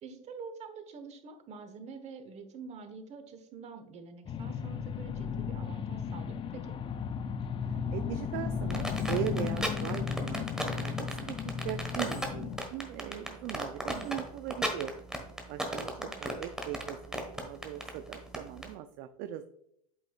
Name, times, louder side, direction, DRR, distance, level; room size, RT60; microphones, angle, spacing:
voice 1, 0.0-6.8 13.9-14.2 16.0-16.4, right 5 dB, 35° right, 7 dB, 1.3 m, -46 dB
sound 1, 4.3-12.6, left 7 dB, 30° left, 0.5 m, -35 dB
voice 2, 7.6-14.9 15.5-19.4, right 12 dB, 55° right, 9 dB, 0.5 m, -39 dB
sound 2, 8.7-18.7, right 1 dB, 5° right, 1.5 m, -35 dB
8.4 x 5.5 x 2.4 m, 0.73 s
hypercardioid pair, 100°, 18 cm